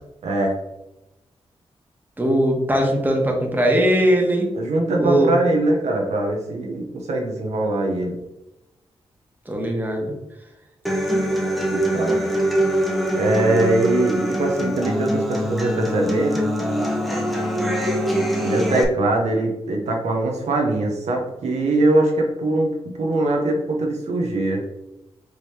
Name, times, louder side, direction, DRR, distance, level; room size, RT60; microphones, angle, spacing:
voice 1, 0.2-0.5 4.5-8.2 11.7-12.2 13.1-16.4 18.4-24.6, right 2 dB, 80° right, 1 dB, 0.8 m, -22 dB
voice 2, 2.2-4.5 5.0-5.3 9.5-10.1, right 1 dB, 15° right, 0 dB, 1.3 m, -20 dB
Human voice / Acoustic guitar, 10.8-18.8, equal, ahead, 0.8 m, -23 dB
4.9 x 3.1 x 2.8 m, 0.93 s
cardioid pair, 55°, 11 cm